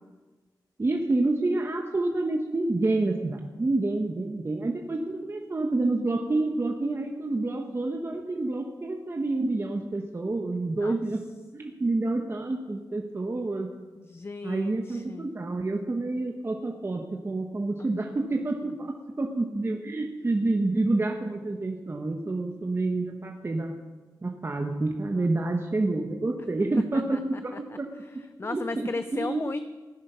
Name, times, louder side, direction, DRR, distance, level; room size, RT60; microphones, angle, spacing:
voice 1, 0.8-11.2 11.5-13.7 14.4-23.7 24.2-27.9 28.4-29.5, right 2 dB, 35° right, 2 dB, 1.0 m, -28 dB
voice 2, 14.0-15.3 17.8-18.0 25.1-25.5 26.7-27.2 27.7-27.8 28.4-29.6, left 3 dB, 35° left, 11 dB, 0.5 m, -36 dB
15.5 x 9.7 x 5.6 m, 1.3 s
wide cardioid pair, 110°, 7 cm